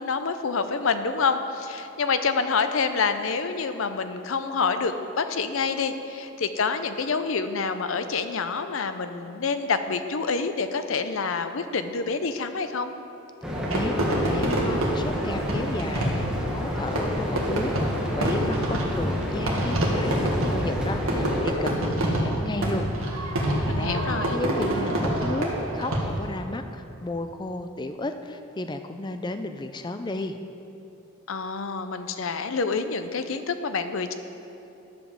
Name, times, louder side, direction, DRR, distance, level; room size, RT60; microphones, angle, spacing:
voice 1, 0.0-12.9 23.7-24.4 31.3-34.1, left 5 dB, 70° left, 9 dB, 0.6 m, -27 dB
sound 1, 13.4-21.5, equal, 5° right, 1.2 m, -29 dB
voice 2, 13.7-30.4, left 2 dB, 20° left, 8 dB, 0.4 m, -33 dB
Fireworks, 13.7-26.4, right 1 dB, 80° right, 1.8 m, -27 dB
11.0 x 5.1 x 7.2 m, 2.9 s
head